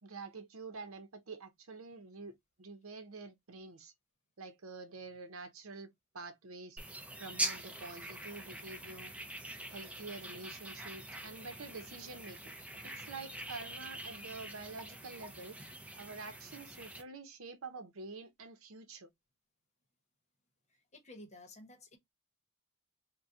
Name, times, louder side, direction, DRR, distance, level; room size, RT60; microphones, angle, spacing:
voice 1, 0.0-3.9 4.4-6.8 7.2-9.1 9.7-12.6 12.8-15.6 16.0-19.1, right 3 dB, 75° right, 0.8 m, -47 dB
sound 1, 6.8-17.0, right 1 dB, 5° right, 0.5 m, -44 dB
voice 2, 20.7-22.0, left 1 dB, 35° left, 0.9 m, -53 dB
3.7 x 2.2 x 2.7 m
head